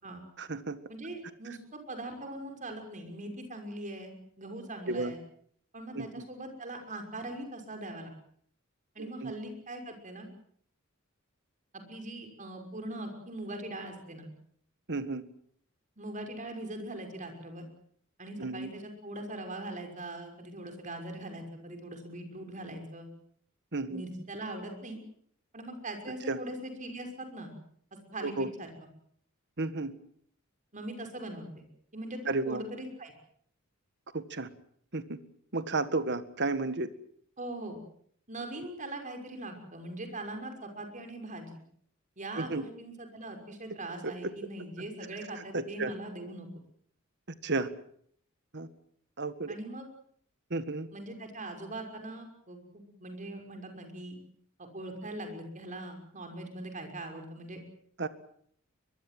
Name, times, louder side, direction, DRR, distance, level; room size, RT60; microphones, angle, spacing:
voice 1, 0.4-0.8 4.9-5.1 5.9-6.2 9.0-9.3 14.9-15.2 18.4-18.7 23.7-24.0 26.3-26.4 28.2-28.5 29.6-29.9 32.3-32.6 34.1-34.5 34.9-35.2 35.5-36.9 42.4-42.6 44.0-44.1 45.5-45.9 47.4-47.7 48.5-48.7 49.2-49.6 50.5-50.9 58.0-58.1, right 3 dB, 55° right, 12 dB, 1.8 m, -32 dB
voice 2, 0.9-5.2 5.7-8.1 8.9-10.3 11.7-14.3 16.0-17.7 18.2-23.1 23.9-25.0 25.5-27.5 28.1-28.7 30.7-31.6 31.9-33.1 37.4-37.8 38.3-41.5 42.2-46.5 49.5-49.9 50.9-54.2 54.6-57.6, right 1 dB, 35° right, 5 dB, 6.0 m, -41 dB
23.5 x 22.0 x 7.7 m, 0.63 s
head